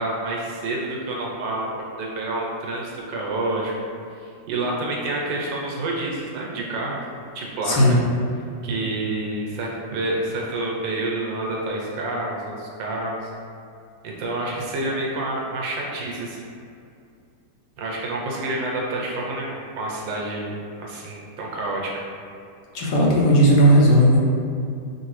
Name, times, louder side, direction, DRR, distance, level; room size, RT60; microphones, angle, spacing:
voice 1, 0.0-3.7 4.2-7.0 7.3-7.8 8.6-13.3 14.0-16.4 17.8-22.1, right 2 dB, 85° right, -2 dB, 1.5 m, -28 dB
voice 2, 7.6-8.0 22.7-24.2, equal, 70° left, -4 dB, 1.3 m, -15 dB
5.3 x 2.6 x 3.1 m, 2.5 s
omnidirectional pair, 2.0 m